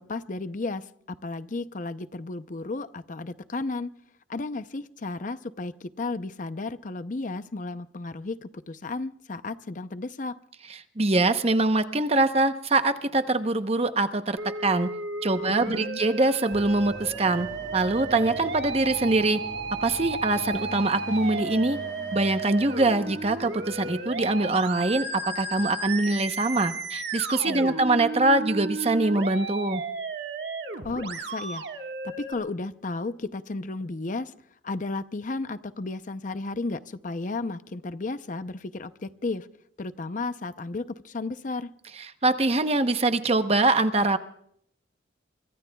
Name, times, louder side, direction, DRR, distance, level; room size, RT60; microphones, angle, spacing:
voice 1, 0.0-3.9 4.3-10.3 15.4-16.0 27.5-27.8 30.8-31.6 32.2-34.3 34.6-39.5 39.8-41.7, left 3 dB, 45° left, 12 dB, 0.6 m, -33 dB
voice 2, 11.0-14.9 15.2-17.5 17.7-19.4 19.8-21.8 22.1-29.8 42.2-44.2, right 2 dB, 35° right, 9 dB, 0.9 m, -23 dB
Musical instrument, 14.4-32.3, right 3 dB, 60° right, 1.6 m, -34 dB
sound 1, 16.5-24.8, left 1 dB, 20° left, 1.5 m, -43 dB
25.5 x 23.5 x 2.3 m, 0.69 s
head